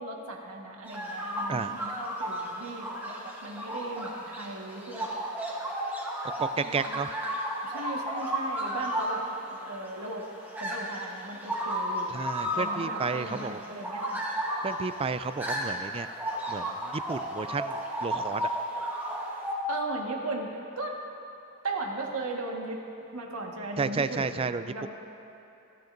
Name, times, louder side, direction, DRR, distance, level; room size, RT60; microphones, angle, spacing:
voice 1, 0.0-5.1 6.5-7.0 7.6-9.2 9.5-10.3 10.6-12.2 12.5-14.3 19.7-21.0 21.6-22.8 23.1-24.9, right 2 dB, 80° right, 0 dB, 1.5 m, -37 dB
sound 1, 0.8-19.6, equal, 10° right, 1.4 m, -34 dB
voice 2, 6.4-7.1 12.1-13.6 14.6-16.1 16.5-18.5 23.8-24.9, right 4 dB, 25° right, 12 dB, 0.3 m, -32 dB
28.0 x 10.5 x 2.6 m, 2.8 s
head